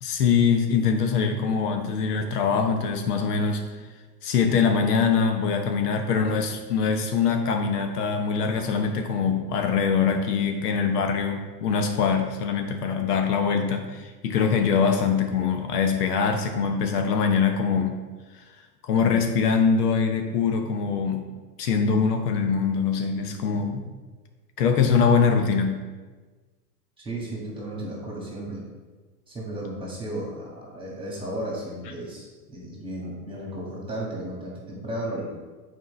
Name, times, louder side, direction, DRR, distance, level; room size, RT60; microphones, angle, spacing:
voice 1, 0.0-3.6 4.2-18.0 18.8-21.2 21.6-23.8 24.6-25.8, left 6 dB, 70° left, 5 dB, 0.9 m, -23 dB
voice 2, 27.0-28.6 29.3-35.3, right 1 dB, 10° right, -3 dB, 1.6 m, -34 dB
7.0 x 4.4 x 3.2 m, 1.3 s
hypercardioid pair, 115°, 49 cm